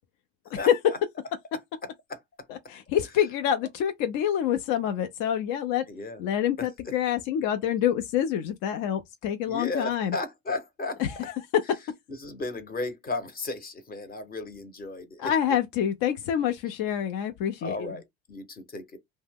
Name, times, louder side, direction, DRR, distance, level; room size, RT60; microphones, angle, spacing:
voice 1, 0.6-1.0 2.1-2.2 5.9-6.2 6.6-6.9 9.5-11.0 12.1-15.3 17.6-19.0, left 2 dB, 25° left, 0.8 m, -35 dB
voice 2, 2.5-5.8 6.2-10.2 11.0-11.8 15.2-17.9, left 9 dB, 60° left, 0.6 m, -27 dB
2.7 x 2.1 x 3.4 m
supercardioid pair, 90°, 37 cm